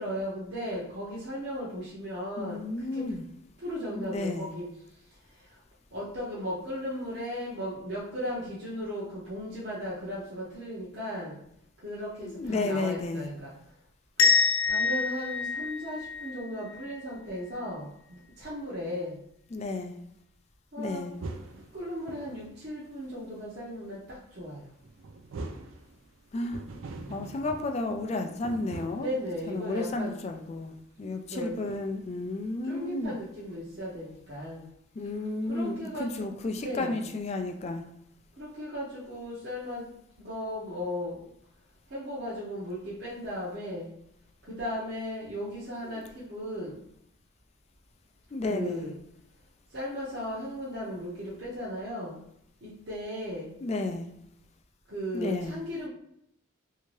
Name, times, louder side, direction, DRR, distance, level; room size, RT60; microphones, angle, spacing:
voice 1, 0.0-3.0 3.6-4.7 5.9-11.4 11.8-13.5 14.2-14.3 14.7-19.2 20.7-21.1 21.7-24.7 29.0-30.1 31.3-31.6 32.6-34.6 35.4-36.1 36.5-37.1 38.4-39.9 40.2-41.2 41.9-43.9 44.5-46.8 48.5-48.9 49.7-52.2 52.6-53.5 54.9-55.9, equal, 50° right, -8 dB, 0.8 m, -36 dB
voice 2, 2.4-3.2 3.9-4.5 12.2-13.3 19.5-20.0 20.8-21.1 26.3-26.6 27.1-29.1 29.5-33.2 35.0-37.8 45.9-46.0 48.3-48.9 53.6-54.1 55.1-55.6, left 2 dB, 30° left, 5 dB, 0.3 m, -32 dB
sound 1, 14.2-17.0, left 4 dB, 85° left, 0.6 m, -26 dB
sound 2, 21.2-22.7 24.5-26.1 26.4-29.3 31.6-32.0 33.5-33.6, right 3 dB, 75° right, 0.4 m, -43 dB
3.4 x 2.8 x 3.1 m, 0.73 s
head